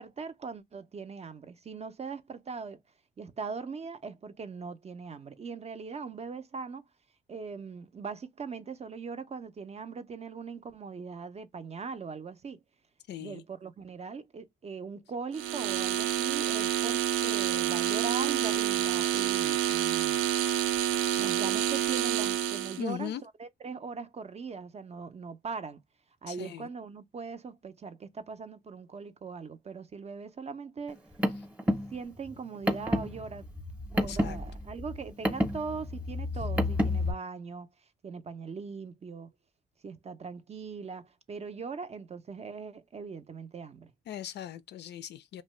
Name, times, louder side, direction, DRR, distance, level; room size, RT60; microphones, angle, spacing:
voice 1, 0.0-2.8 3.2-6.8 7.3-12.6 13.2-20.5 21.2-25.8 26.2-31.0 31.9-33.5 33.9-37.7 38.0-39.3 39.8-43.9, right 5 dB, 35° right, 0.5 m, -40 dB
voice 2, 13.1-13.4 17.1-17.2 22.8-23.2 26.3-26.7 34.0-34.4 44.1-45.4, left 10 dB, 60° left, 0.4 m, -39 dB
sound 1, 15.3-22.8, right 11 dB, 90° right, 0.4 m, -28 dB
Car, 30.9-37.1, left 1 dB, 5° right, 0.7 m, -30 dB
2.6 x 2.1 x 3.1 m
cardioid pair, 90°, 20 cm